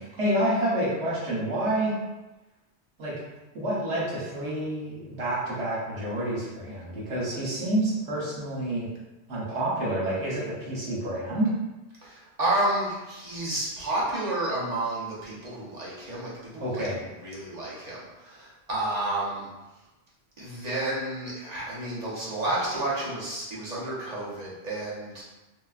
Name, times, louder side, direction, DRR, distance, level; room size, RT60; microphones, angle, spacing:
voice 1, 0.0-2.0 3.0-3.1 3.5-8.9 9.3-11.5 16.6-17.0, right 1 dB, 80° right, -6 dB, 1.3 m, -28 dB
voice 2, 12.0-19.5 20.4-25.2, right 1 dB, 40° right, -7 dB, 0.9 m, -31 dB
3.3 x 2.8 x 2.4 m, 1.1 s
omnidirectional pair, 1.1 m